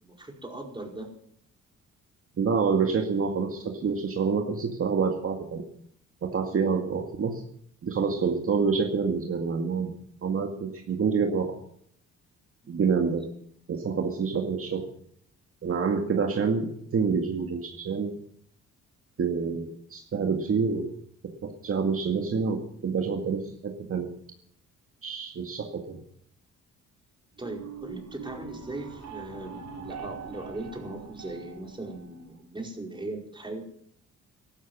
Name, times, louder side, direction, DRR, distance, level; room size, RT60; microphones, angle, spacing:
voice 1, 0.0-1.1 12.6-12.8 27.4-33.6, right 2 dB, 15° right, 1 dB, 4.9 m, -39 dB
voice 2, 2.4-5.6 6.2-7.4 7.8-9.9 10.2-11.6 12.7-13.3 13.7-14.9 15.6-18.1 19.2-20.9 21.4-24.1 25.0-26.0, right 5 dB, 45° right, 3 dB, 2.1 m, -27 dB
sound 1, 27.4-32.4, right 6 dB, 60° right, 5.0 m, -43 dB
15.5 x 12.5 x 6.2 m, 0.66 s
cardioid pair, 90°, 30 cm